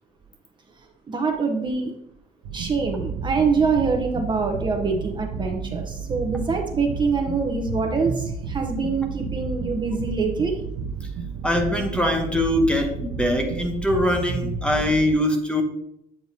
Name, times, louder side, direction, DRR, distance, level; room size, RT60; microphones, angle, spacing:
voice 1, 1.1-1.9 2.5-10.5, right 4 dB, 25° right, 3 dB, 0.7 m, -24 dB
sound 1, 2.4-15.0, right 5 dB, 90° right, 0.8 m, -32 dB
voice 2, 11.4-15.6, left 1 dB, 5° left, 3 dB, 0.9 m, -22 dB
8.2 x 4.6 x 2.8 m, 0.78 s
cardioid pair, 110°, 17 cm